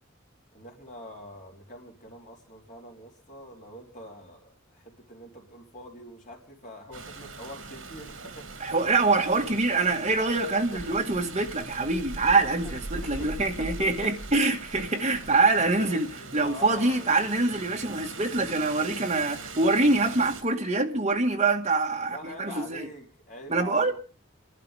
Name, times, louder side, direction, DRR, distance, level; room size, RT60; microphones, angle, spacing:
voice 1, 0.5-9.4 10.5-11.0 12.6-12.7 13.0-14.1 15.1-15.2 15.7-17.1 22.1-23.9, left 1 dB, 40° left, 3.7 m, -44 dB
Rain, 6.9-20.4, right 3 dB, 70° right, 3.0 m, -41 dB
voice 2, 8.6-16.1 16.3-22.9 23.5-23.9, right 3 dB, 35° right, 2.0 m, -25 dB
29.0 x 12.0 x 3.6 m
head